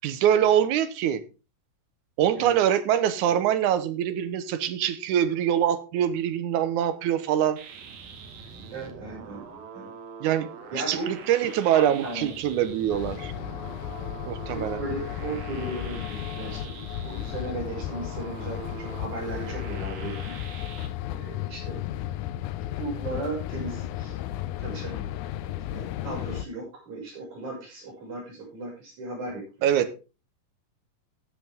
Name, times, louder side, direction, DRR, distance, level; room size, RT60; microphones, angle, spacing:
voice 1, 0.0-1.2 2.2-7.6 10.2-10.5 10.9-13.3 14.3-14.8 29.6-30.0, right 10 dB, 70° right, 2.0 m, -24 dB
sound 1, 7.6-20.9, right 6 dB, 85° right, 3.7 m, -43 dB
voice 2, 8.7-9.4 9.7-9.9 10.7-11.1 11.4-11.5 11.7-12.3 14.5-20.4 21.1-21.8 22.8-24.2 24.6-25.0 25.7-29.7, right 2 dB, 55° right, 7.6 m, -36 dB
sound 2, 12.9-26.5, left 12 dB, 75° left, 1.9 m, -34 dB
15.0 x 8.1 x 3.6 m
omnidirectional pair, 4.1 m